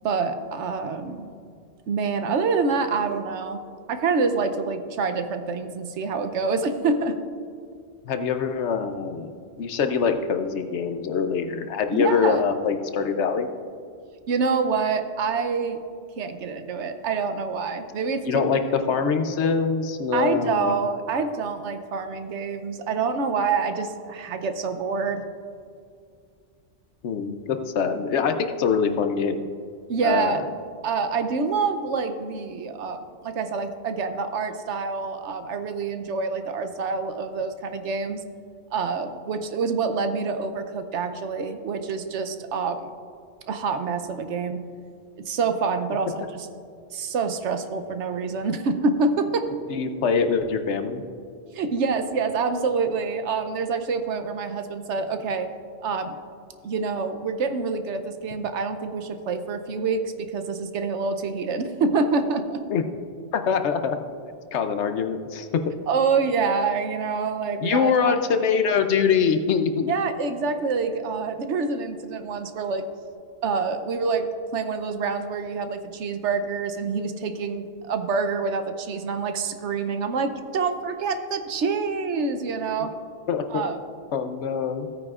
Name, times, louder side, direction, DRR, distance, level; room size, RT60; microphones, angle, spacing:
voice 1, 0.0-1.3 1.9-3.6 3.9-7.1 11.9-12.4 14.3-15.8 16.2-18.5 20.1-25.2 29.9-30.4 30.8-38.2 38.7-42.9 43.5-44.6 45.3-46.5 46.9-49.5 51.5-55.5 55.8-56.1 56.6-62.6 65.9-68.2 69.9-72.8 73.4-74.3 74.5-82.9 83.5-83.8, right 4 dB, 75° right, 8 dB, 1.0 m, -26 dB
voice 2, 8.0-9.3 9.6-13.5 18.2-20.7 27.0-29.4 30.0-30.4 49.7-51.0 62.7-62.8 63.3-64.0 64.5-65.5 67.6-69.9 83.3-83.6 84.1-84.9, left 6 dB, 70° left, 7 dB, 1.0 m, -24 dB
16.0 x 9.1 x 2.4 m, 2.3 s
omnidirectional pair, 1.2 m